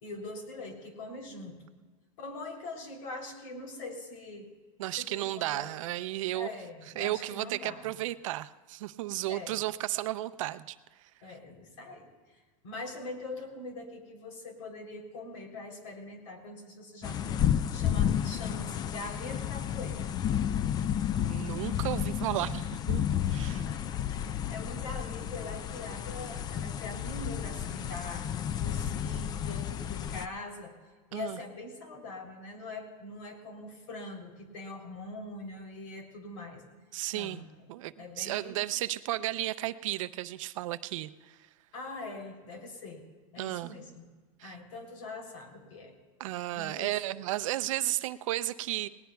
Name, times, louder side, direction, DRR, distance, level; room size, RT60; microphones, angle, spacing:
voice 1, 0.0-1.6 2.2-4.5 5.0-5.7 6.3-7.9 9.3-9.6 11.2-20.1 23.5-30.7 31.1-36.6 37.1-37.4 38.0-38.6 41.7-43.0 43.3-44.1 44.4-45.9 46.5-47.0, left 2 dB, 75° left, 2 dB, 3.4 m, -43 dB
voice 2, 4.8-6.5 7.0-10.8 11.0-11.1 21.2-23.0 23.3-23.7 31.1-31.4 36.9-41.4 43.4-43.7 44.4-44.6 46.2-48.9, right 16 dB, 75° right, 13 dB, 0.6 m, -34 dB
sound 1, 17.0-30.3, left 9 dB, 25° left, 0.4 m, -32 dB
19.0 x 19.0 x 2.3 m, 1.4 s
supercardioid pair, 135°, 17 cm